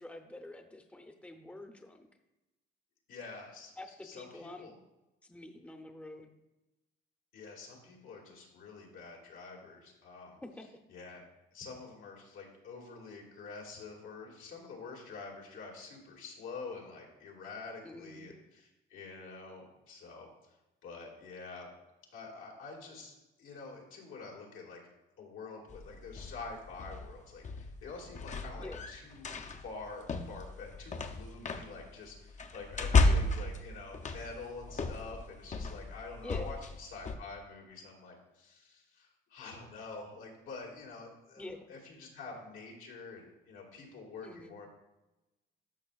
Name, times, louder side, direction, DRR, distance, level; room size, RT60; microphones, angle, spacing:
voice 1, 0.0-2.1 3.8-4.7 5.2-6.3 10.4-10.7 17.8-18.3 28.6-28.8 33.0-33.4 36.2-36.6 41.4-41.7 44.2-44.5, left 1 dB, 5° left, 5 dB, 0.7 m, -47 dB
voice 2, 3.1-3.7 4.0-4.7 7.3-10.4 10.9-11.2 11.5-18.6 18.9-20.3 20.8-21.7 22.1-24.8 25.2-44.7, left 4 dB, 85° left, -2 dB, 2.1 m, -47 dB
sound 1, 25.7-37.2, left 3 dB, 35° left, 0.7 m, -34 dB
12.5 x 5.5 x 2.4 m, 0.99 s
cardioid pair, 90°, 20 cm